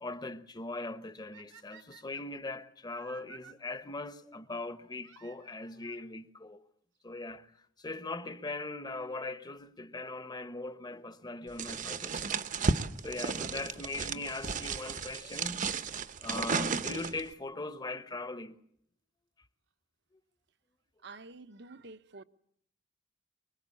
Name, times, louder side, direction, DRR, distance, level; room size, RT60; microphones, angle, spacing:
voice 1, 0.0-6.6 7.0-7.5 7.8-12.7 13.0-15.7 16.2-18.6, left 2 dB, 20° left, 1.1 m, -40 dB
sound 1, 1.3-3.5 5.0-6.1 7.0-7.1 7.8-7.9 8.1-8.2 10.1-10.3 13.1-13.2 14.3-14.4 15.8-15.9 16.2-16.3 16.5-16.6 16.8-16.9 17.1-17.2 17.3-17.4 17.7-17.8, right 7 dB, 85° right, 3.1 m, -55 dB
sound 2, 11.6-17.3, right 4 dB, 45° right, 0.9 m, -34 dB
voice 2, 21.0-22.2, right 3 dB, 65° right, 1.0 m, -49 dB
24.5 x 22.5 x 8.5 m
head